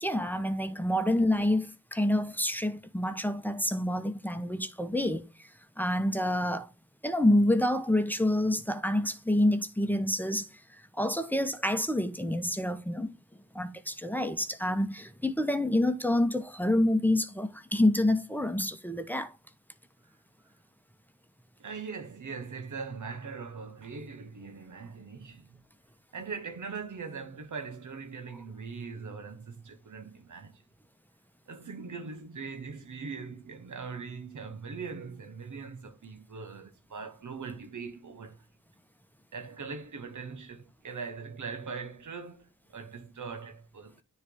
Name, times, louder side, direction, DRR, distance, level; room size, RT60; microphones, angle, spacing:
voice 1, 0.0-5.5 5.8-6.7 7.0-13.1 13.5-19.3, left 1 dB, 5° left, 1.0 m, -28 dB
voice 2, 21.6-25.6 26.1-30.6 31.5-38.5 39.3-44.0, right 5 dB, 75° right, 1.1 m, -41 dB
9.6 x 3.4 x 3.8 m
cardioid pair, 45°, 31 cm